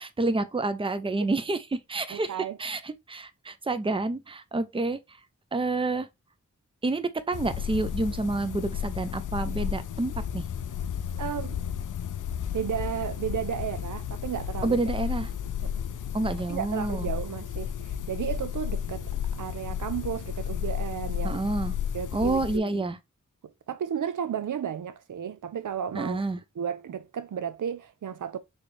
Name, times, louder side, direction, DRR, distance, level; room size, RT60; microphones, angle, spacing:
voice 1, 0.0-5.0 5.5-6.1 6.8-10.4 14.6-15.3 16.1-17.1 21.2-21.7 22.1-23.0 25.9-26.4, right 2 dB, 20° right, 0.5 m, -29 dB
voice 2, 2.1-2.6 11.2-11.6 12.5-14.8 15.6-15.7 16.5-19.0 19.4-21.4 21.9-22.8 23.7-26.3 26.6-28.4, right 8 dB, 85° right, 0.5 m, -33 dB
sound 1, 7.3-22.6, left 9 dB, 85° left, 0.5 m, -33 dB
4.3 x 3.2 x 3.2 m
wide cardioid pair, 75°, 30 cm